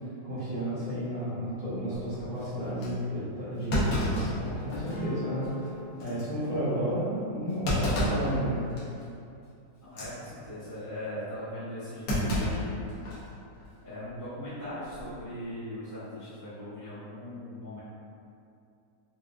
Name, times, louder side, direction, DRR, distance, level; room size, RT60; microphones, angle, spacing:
voice 1, 0.2-5.7 6.0-8.8, equal, 40° right, -12 dB, 1.1 m, -32 dB
Thump thud, 2.2-2.3 2.8-2.9 3.7-5.0 5.4-5.5 6.0-6.2 7.6-8.3 8.8-9.0 9.8-10.1 12.1-13.3 13.6-13.7 14.8-15.2, equal, 65° left, 1.2 m, -29 dB
Acoustic guitar / Strum, 4.9-9.3, left 2 dB, 40° left, 1.1 m, -42 dB
voice 2, 9.8-12.8 13.8-17.8, left 1 dB, 20° right, -14 dB, 0.5 m, -39 dB
4.7 x 2.4 x 2.4 m, 2.6 s
omnidirectional pair, 1.9 m